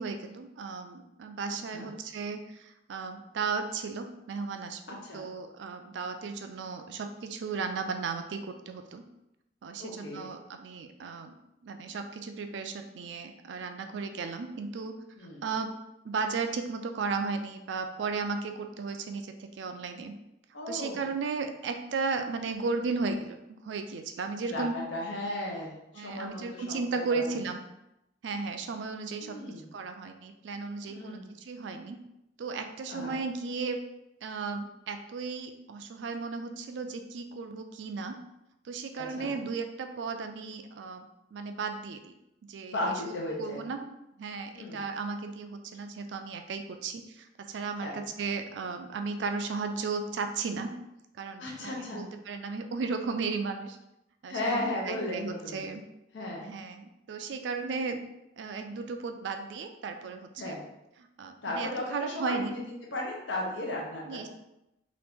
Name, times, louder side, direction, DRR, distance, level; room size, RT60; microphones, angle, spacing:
voice 1, 0.0-9.1 9.6-11.4 11.6-15.0 15.4-15.7 16.0-20.1 20.7-24.7 25.9-27.6 28.2-29.4 29.7-32.0 32.4-33.8 34.2-38.2 38.6-42.1 42.5-43.8 44.2-50.7 51.2-53.8 54.2-55.8 56.4-58.0 58.4-60.6 61.2-62.6 64.1-64.3, right 4 dB, 70° right, 6 dB, 0.4 m, -35 dB
voice 2, 4.9-5.2 9.8-10.3 15.2-15.4 20.5-21.0 24.4-26.7 27.1-27.4 29.2-29.7 30.9-31.2 32.9-33.2 39.0-39.4 42.7-43.6 44.5-44.8 47.8-48.0 51.4-52.0 54.3-55.7 56.1-56.4 60.4-60.6 61.4-62.6 62.9-64.3, left 1 dB, 80° left, -2 dB, 0.8 m, -35 dB
2.9 x 2.5 x 3.4 m, 0.87 s
head